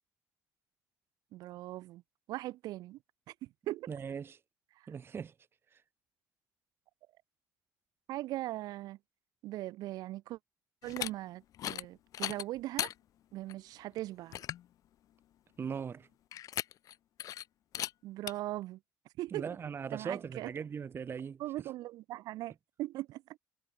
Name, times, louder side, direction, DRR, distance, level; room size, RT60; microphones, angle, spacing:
voice 1, 1.3-2.0 2.3-3.0 3.3-3.9 4.8-4.9 8.1-9.0 9.4-10.4 10.8-12.9 13.3-14.4 18.0-18.8 19.2-19.5 19.9-20.5 21.4-23.2, right 16 dB, 70° right, 0.9 m, -40 dB
voice 2, 3.9-4.4 4.9-5.3 5.7-5.8 15.6-16.1 19.3-21.4, right 6 dB, 35° right, 0.5 m, -39 dB
sound 1, 10.8-11.1 11.5-11.9 12.1-12.9 13.5-13.6 14.0-14.1 14.3-14.7 16.3-16.9 17.2-17.4 17.7-17.9 18.3-18.4, left 12 dB, 60° left, 0.7 m, -37 dB
supercardioid pair, 85°, 7 cm